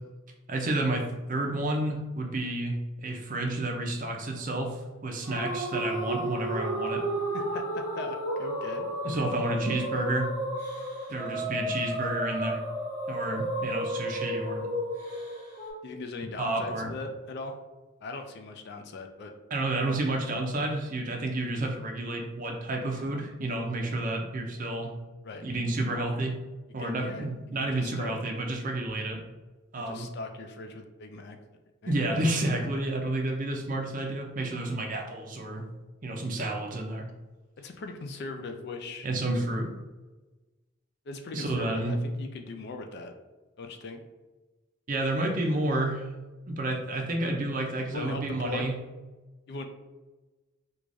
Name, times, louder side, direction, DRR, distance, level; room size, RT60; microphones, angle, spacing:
voice 1, 0.5-7.0 9.0-10.3 11.1-12.6 13.1-14.7 16.4-16.9 19.5-24.9 25.4-26.4 26.7-29.2 29.7-30.1 31.9-35.6 36.0-37.1 39.0-39.7 41.3-41.9 44.9-46.0 46.5-48.8, right 2 dB, 40° right, 2 dB, 0.5 m, -30 dB
sound 1, 5.2-15.7, right 1 dB, 10° left, 1.1 m, -32 dB
voice 2, 7.3-9.3 15.8-17.6 18.0-19.3 25.2-25.5 26.8-27.3 27.6-28.2 29.7-31.4 31.8-31.9 37.6-39.1 41.1-43.1 43.6-44.0 47.9-48.7 49.5-49.7, left 3 dB, 50° left, 5 dB, 0.3 m, -39 dB
4.6 x 2.3 x 2.6 m, 1.2 s
head